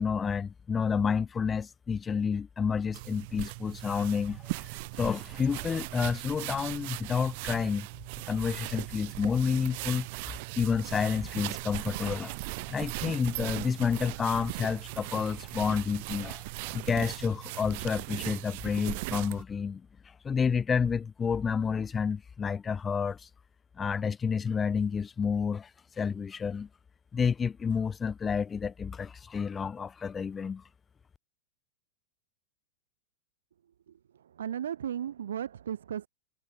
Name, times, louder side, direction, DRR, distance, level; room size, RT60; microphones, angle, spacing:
voice 1, 0.0-4.7 5.0-7.9 8.3-10.1 10.6-12.4 12.7-19.9 20.2-23.3 23.8-25.7 26.0-26.7 27.1-30.6, left 6 dB, 20° left, 2.0 m, -30 dB
sound 1, 2.9-19.4, right 27 dB, 55° right, 6.3 m, -38 dB
voice 2, 33.9-36.1, right 9 dB, 90° right, 5.6 m, -36 dB
hypercardioid pair, 125°, 0 cm